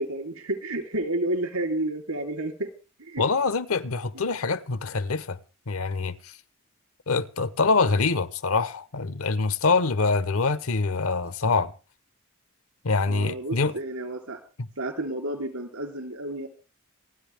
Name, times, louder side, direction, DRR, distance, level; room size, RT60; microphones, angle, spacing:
voice 1, 0.0-2.7 3.0-3.3 13.1-14.4 14.8-16.5, right 1 dB, 85° right, 3.6 m, -30 dB
voice 2, 3.2-5.4 5.7-6.3 7.1-11.7 12.8-13.7, left 4 dB, 75° left, 0.9 m, -25 dB
28.0 x 10.0 x 3.5 m
head